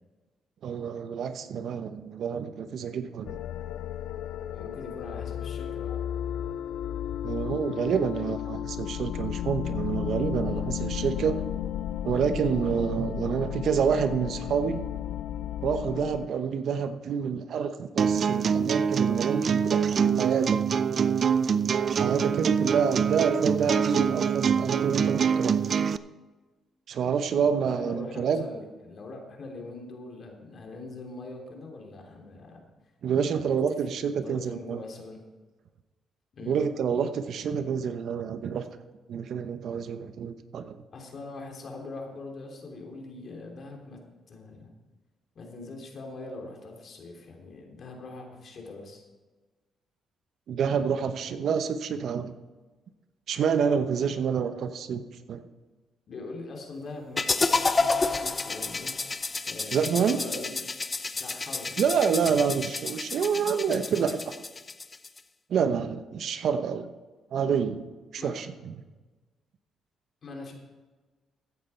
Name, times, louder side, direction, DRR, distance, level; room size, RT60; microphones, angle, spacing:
voice 1, 0.6-3.4 7.2-11.4 12.0-14.8 15.6-20.6 22.0-25.6 26.9-28.4 33.0-34.8 36.5-38.6 39.1-40.8 50.5-52.3 53.3-55.4 59.7-60.2 61.8-64.3 65.5-66.9 67.3-67.8 68.1-68.7, right 7 dB, 65° right, 10 dB, 0.9 m, -28 dB
sound 1, 3.2-16.3, left 11 dB, 80° left, 0.4 m, -33 dB
voice 2, 4.5-6.0 27.6-32.6 33.3-35.2 36.3-36.6 40.9-44.0 44.3-44.7 45.3-49.0 56.1-58.9 59.4-60.6 61.2-61.9 68.2-68.4 70.2-70.5, left 3 dB, 50° left, 1 dB, 3.2 m, -42 dB
sound 2, 18.0-26.0, right 7 dB, 50° right, 0.5 m, -25 dB
sound 3, 57.2-65.2, left 3 dB, 30° left, 0.6 m, -30 dB
15.0 x 9.4 x 4.5 m, 1.3 s
cardioid pair, 90°, 0 cm